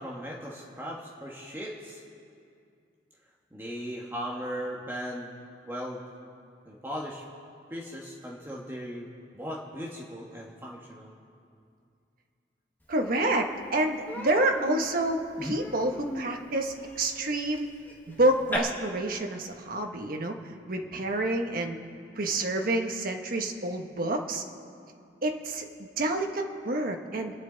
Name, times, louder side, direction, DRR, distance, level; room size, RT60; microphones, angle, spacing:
voice 1, 0.0-2.0 3.5-5.4 5.6-6.0 6.6-7.2 7.7-11.1 20.8-21.0, equal, 15° right, -3 dB, 1.4 m, -38 dB
voice 2, 12.9-17.7 18.1-20.4 20.7-21.8 22.2-24.4 25.2-27.3, right 2 dB, 55° right, 4 dB, 1.3 m, -28 dB
Human voice, 13.1-13.2 13.5-13.7 14.1-18.6, left 1 dB, 10° left, 1.6 m, -38 dB
29.5 x 10.0 x 4.0 m, 2.4 s
head